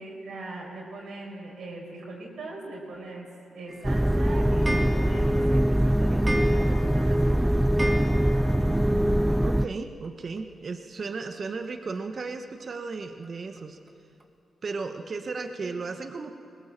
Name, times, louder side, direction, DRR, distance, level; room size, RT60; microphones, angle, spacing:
voice 1, 0.0-7.6 15.6-15.8, right 2 dB, 75° right, -1 dB, 5.0 m, -41 dB
Clock, 3.7-8.8 9.1-9.2 9.4-9.5 9.7-9.8 11.0-11.1 11.6-11.7 12.3-12.4 12.9-13.0 13.6-13.7 14.2-14.3, right 1 dB, 25° right, 2.1 m, -36 dB
sound 1, 3.8-9.7, equal, 10° right, 0.4 m, -23 dB
voice 2, 8.5-13.8 14.6-16.3, right 4 dB, 55° right, 6 dB, 1.3 m, -35 dB
21.5 x 18.5 x 7.5 m, 2.5 s
supercardioid pair, 55°, 0 cm